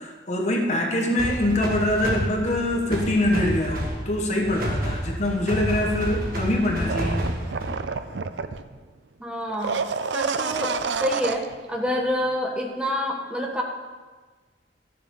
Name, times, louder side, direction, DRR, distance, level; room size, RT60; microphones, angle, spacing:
voice 1, 0.0-7.3, left 1 dB, 40° left, 1 dB, 1.3 m, -24 dB
sound 1, 1.2-8.0, equal, 55° right, 1.9 m, -30 dB
sound 2, 6.9-8.8 9.5-11.6 11.9-12.0, right 5 dB, 80° right, 0.5 m, -29 dB
voice 2, 9.2-13.6, left 1 dB, 5° right, 0 dB, 1.5 m, -28 dB
13.5 x 6.7 x 5.5 m, 1.4 s
head